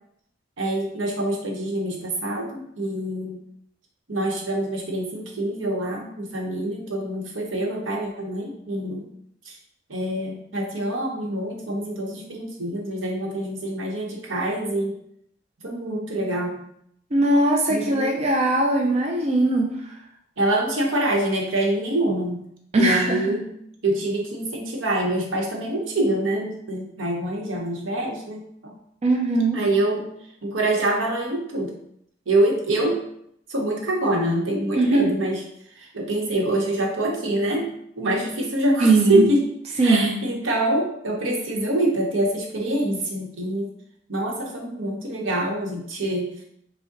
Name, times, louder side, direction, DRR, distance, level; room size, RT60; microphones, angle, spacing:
voice 1, 0.6-3.4 4.1-9.1 9.4-9.6 9.9-15.0 15.6-16.7 17.7-18.0 20.4-22.4 22.7-23.5 23.8-28.7 29.5-30.1 30.4-31.7 32.3-33.0 33.5-35.4 35.8-37.7 38.0-39.5 39.8-43.7 44.1-46.4, right 1 dB, 80° right, 0 dB, 0.9 m, -25 dB
voice 2, 17.1-19.9 22.7-23.3 29.0-29.6 34.8-35.1 38.8-39.3 39.8-40.1, right 2 dB, 35° right, 1 dB, 0.5 m, -20 dB
5.1 x 2.1 x 3.8 m, 0.73 s
head